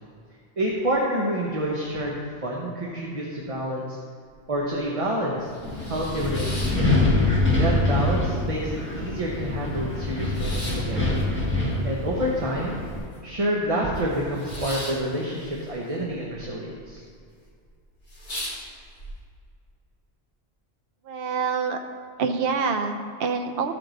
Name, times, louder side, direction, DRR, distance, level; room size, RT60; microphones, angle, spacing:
voice 1, 0.6-2.1 2.4-4.0 4.5-5.5 5.9-6.9 7.6-11.2 11.8-12.7 13.2-17.0, right 1 dB, 30° right, -3 dB, 0.9 m, -28 dB
sound 1, 4.3-4.4 4.8-4.9 5.3-7.5 7.8-8.6 8.9-9.0 9.2-13.4 13.6-16.4 16.7-17.2 17.6-17.7 18.0-19.1, equal, 45° left, 1.9 m, -38 dB
Wind, 5.6-13.0, left 2 dB, 10° left, 1.6 m, -25 dB
voice 2, 21.1-21.8 22.2-23.7, right 5 dB, 60° right, 5 dB, 0.8 m, -26 dB
13.5 x 4.6 x 3.9 m, 2.2 s
omnidirectional pair, 1.2 m